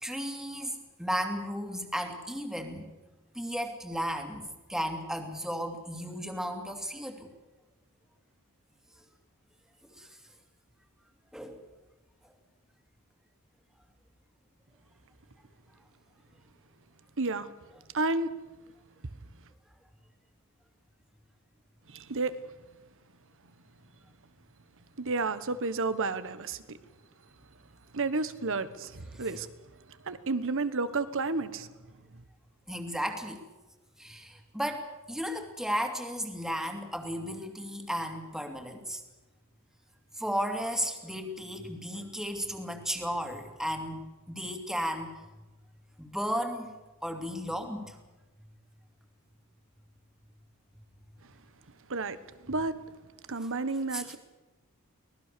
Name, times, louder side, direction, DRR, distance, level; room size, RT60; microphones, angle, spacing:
voice 1, 0.0-2.8 3.3-7.3 10.0-10.1 11.3-11.6 29.1-29.4 32.7-33.4 34.0-39.0 40.2-45.1 46.0-46.7 47.0-48.0 53.9-54.2, equal, ahead, 4 dB, 2.6 m, -34 dB
voice 2, 17.2-17.5 17.9-18.3 21.9-22.3 25.0-26.8 27.9-29.5 30.0-31.7 51.9-52.2 52.4-52.8 53.3-54.2, right 3 dB, 60° right, 13 dB, 1.3 m, -31 dB
24.5 x 18.5 x 6.9 m, 1.1 s
head